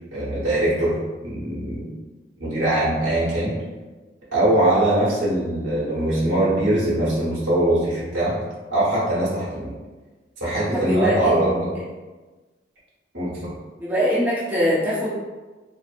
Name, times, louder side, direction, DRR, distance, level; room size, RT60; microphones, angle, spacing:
voice 1, 0.1-0.9 1.2-1.9 2.4-3.5 4.3-8.3 8.7-9.7 10.4-11.7 13.1-13.5, right 1 dB, 80° right, -9 dB, 1.2 m, -22 dB
voice 2, 10.7-11.4 13.8-15.2, equal, 10° right, -9 dB, 0.5 m, -22 dB
2.9 x 2.0 x 2.4 m, 1.2 s
head